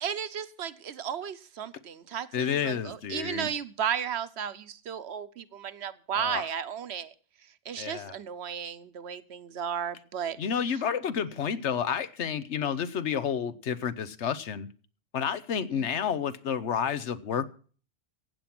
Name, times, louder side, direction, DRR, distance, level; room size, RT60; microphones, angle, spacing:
voice 1, 0.0-7.1 7.7-10.4 15.7-15.9, right 8 dB, 70° right, 1.1 m, -34 dB
voice 2, 2.3-3.5 6.1-6.5 7.8-8.2 10.4-14.7 15.1-17.5, left 7 dB, 75° left, 1.2 m, -30 dB
15.5 x 8.8 x 5.9 m
omnidirectional pair, 1.2 m